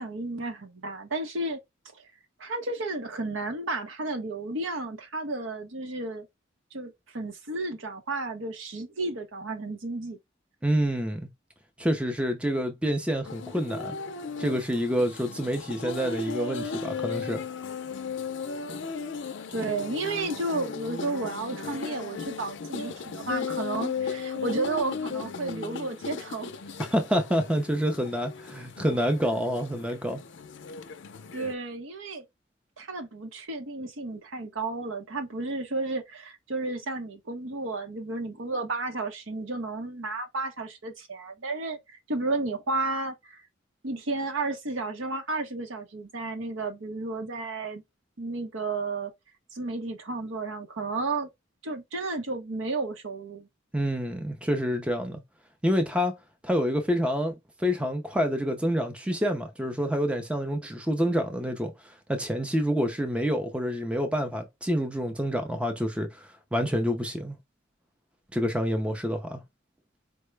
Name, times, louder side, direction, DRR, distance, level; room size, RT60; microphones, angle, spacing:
voice 1, 0.0-1.6 1.9-2.0 2.4-6.3 6.7-10.2 19.5-26.5 31.3-32.2 32.8-43.4 43.8-47.8 48.2-49.1 49.5-51.3 51.6-53.5, right 2 dB, 75° right, 0.9 m, -32 dB
voice 2, 10.6-11.3 11.8-14.0 14.4-17.4 26.8-30.2 53.7-55.2 55.6-56.2 56.4-67.4 68.3-69.4, equal, 5° right, 0.5 m, -27 dB
sound 1, 13.3-31.5, left 5 dB, 60° left, 0.5 m, -36 dB
4.5 x 2.1 x 3.2 m
head